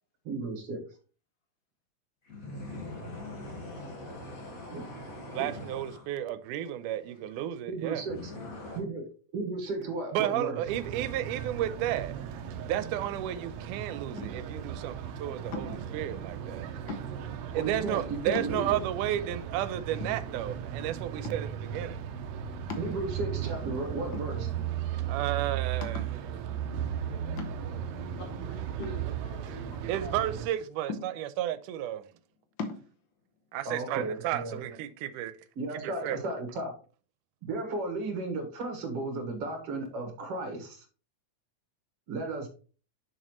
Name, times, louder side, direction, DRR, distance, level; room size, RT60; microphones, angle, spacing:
voice 1, 0.2-0.8 4.7-4.8 5.4-5.5 7.7-8.3 8.7-9.1 9.3-10.6 17.6-18.8 22.8-24.5 33.7-34.6 35.6-36.7 37.4-40.9 42.1-42.5, right 3 dB, 55° right, 2.3 m, -34 dB
sound 1, 2.3-6.1 8.1-8.8, left 1 dB, 35° left, 1.6 m, -42 dB
voice 2, 5.3-8.1 10.1-12.1 12.7-16.7 17.5-22.0 25.1-26.2 29.5-32.0 33.5-35.3 35.8-36.2, right 12 dB, 90° right, 2.2 m, -33 dB
sound 2, 10.7-30.5, right 9 dB, 70° right, 1.7 m, -36 dB
sound 3, 14.1-14.6 15.5-16.0 16.9-17.4 17.9-18.0 18.3-19.0 19.5-19.6 20.0-20.7 21.2-21.6 22.7-23.4 24.1-24.8 25.1-25.2 25.8-26.2 27.4-27.9 28.8-29.7 30.9-31.5 32.6-32.9, left 4 dB, 90° left, 1.0 m, -40 dB
voice 3, 28.2-30.2 33.9-34.3, left 1 dB, 60° left, 2.2 m, -47 dB
6.6 x 6.4 x 3.0 m
omnidirectional pair, 3.6 m